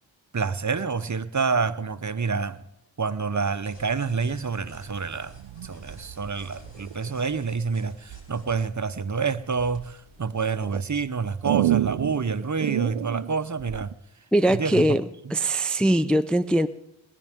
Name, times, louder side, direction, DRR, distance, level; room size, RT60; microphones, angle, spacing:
voice 1, 0.3-2.6 3.0-5.4 5.6-13.9 14.5-15.0 15.3-15.4, right 5 dB, 35° right, 13 dB, 0.8 m, -28 dB
sound 1, 3.5-10.7, left 1 dB, 60° left, 6.2 m, -52 dB
sound 2, 5.2-7.1 8.1-8.6 9.1-9.9 10.5-13.9, right 13 dB, 80° right, 0.5 m, -30 dB
voice 2, 14.3-16.7, right 1 dB, ahead, 9 dB, 0.5 m, -22 dB
19.5 x 11.0 x 3.6 m, 0.82 s
cardioid pair, 45°, 48 cm